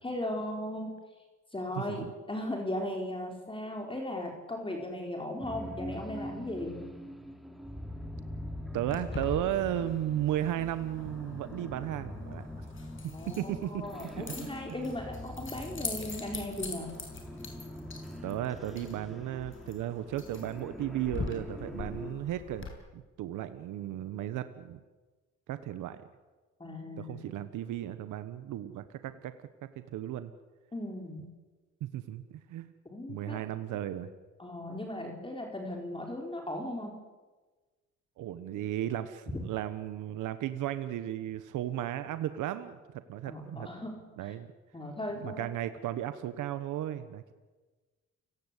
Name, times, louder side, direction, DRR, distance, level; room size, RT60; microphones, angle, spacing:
voice 1, 0.0-1.0 1.5-6.9 13.1-17.0 26.6-27.3 30.7-31.3 32.9-33.4 34.4-37.0 39.3-39.4 43.2-44.0 44.2-44.3 44.7-45.5, left 1 dB, 15° left, 2 dB, 4.3 m, -37 dB
sound 1, 5.4-22.1, left 1 dB, ahead, 3.5 m, -44 dB
voice 2, 8.7-12.5 13.3-14.5 18.2-22.7 22.9-24.8 25.5-26.0 27.0-29.5 29.7-30.3 31.8-32.7 33.1-34.1 38.2-43.7 44.2-44.5 45.2-47.3, right 12 dB, 85° right, 11 dB, 1.3 m, -35 dB
Keys jangling, 8.9-22.7, left 4 dB, 40° left, 6.3 m, -43 dB
30.0 x 18.0 x 8.4 m, 1.3 s
cardioid pair, 90°, 30 cm